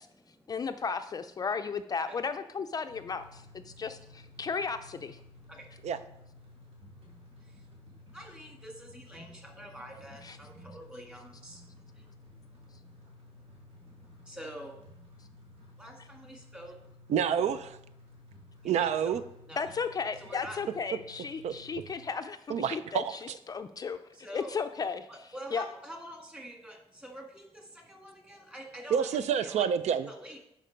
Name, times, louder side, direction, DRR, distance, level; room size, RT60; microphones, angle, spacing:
voice 1, 0.5-5.2 10.2-10.4 19.6-24.0 24.3-25.1 25.5-25.6, left 5 dB, 35° left, 9 dB, 0.4 m, -35 dB
sound 1, 2.9-22.1, left 1 dB, 60° right, 3.0 m, -54 dB
voice 2, 5.4-5.8 6.5-14.8 15.8-16.8 18.6-19.2 19.5-19.6 20.2-20.6 24.1-24.5 25.1-29.7 30.1-30.4, equal, 10° right, 1 dB, 1.7 m, -47 dB
voice 3, 17.1-17.8 18.6-19.2 21.4-21.5 22.5-23.1 28.9-30.1, right 8 dB, 75° right, 12 dB, 0.5 m, -28 dB
11.0 x 4.5 x 5.1 m, 0.81 s
wide cardioid pair, 140°, 11 cm